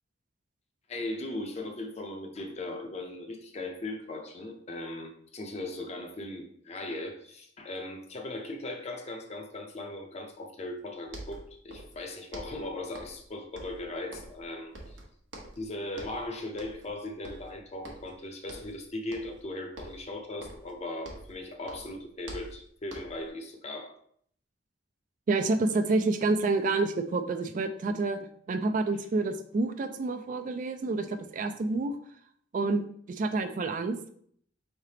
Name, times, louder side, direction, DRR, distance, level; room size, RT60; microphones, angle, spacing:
voice 1, 0.9-15.0 15.6-24.0, left 2 dB, 35° left, 5 dB, 0.6 m, -38 dB
sound 1, 10.8-10.9 11.1-12.0 12.3-13.3 13.6-14.5 14.7-15.7 15.9-16.3 16.6-16.9 17.2-18.2 18.5-18.8 19.1-19.5 19.8-21.4 21.7-23.3, right 1 dB, 85° right, 1.0 m, -46 dB
voice 2, 25.3-32.0 32.5-34.1, right 3 dB, 45° right, 9 dB, 0.3 m, -28 dB
4.7 x 3.3 x 2.8 m, 0.63 s
head